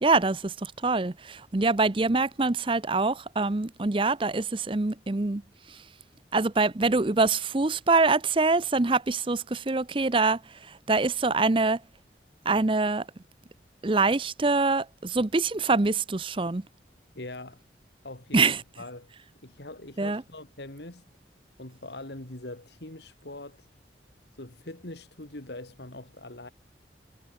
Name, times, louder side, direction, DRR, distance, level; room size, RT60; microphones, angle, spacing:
voice 1, 0.0-5.4 5.7-5.8 6.3-11.8 12.4-13.1 13.8-16.6 18.3-18.6 20.0-20.2, right 3 dB, 30° right, 0.6 m, -25 dB
voice 2, 17.1-17.6 18.0-19.1 19.4-21.0 21.6-23.7 24.4-26.5, left 2 dB, 70° left, 2.8 m, -42 dB
head